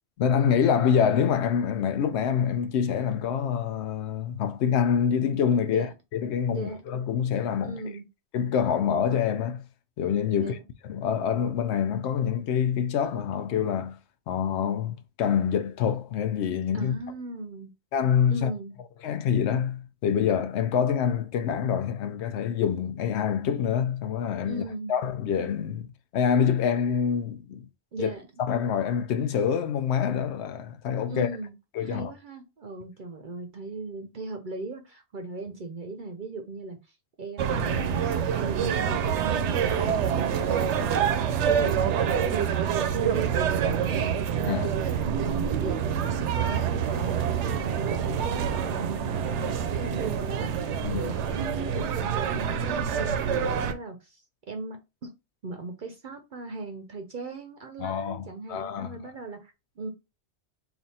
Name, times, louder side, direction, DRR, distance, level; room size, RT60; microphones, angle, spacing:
voice 1, 0.2-5.9 6.1-7.8 8.3-9.6 10.0-10.6 10.8-14.0 14.3-17.0 17.9-18.5 19.0-24.6 24.9-27.7 28.0-28.1 28.4-31.3 31.7-32.1 39.8-39.9 44.5-44.7 50.8-51.1 57.8-59.0, left 8 dB, 75° left, 0.9 m, -26 dB
voice 2, 7.6-8.1 10.3-10.6 16.7-17.7 18.3-18.8 24.5-25.0 27.9-28.3 31.1-31.5 31.8-44.1 44.5-50.5 50.9-54.8 55.0-55.1 55.4-59.9, right 3 dB, 55° right, 0.7 m, -38 dB
sound 1, 37.4-53.7, right 8 dB, 80° right, 0.9 m, -26 dB
3.4 x 2.5 x 4.1 m
omnidirectional pair, 1.2 m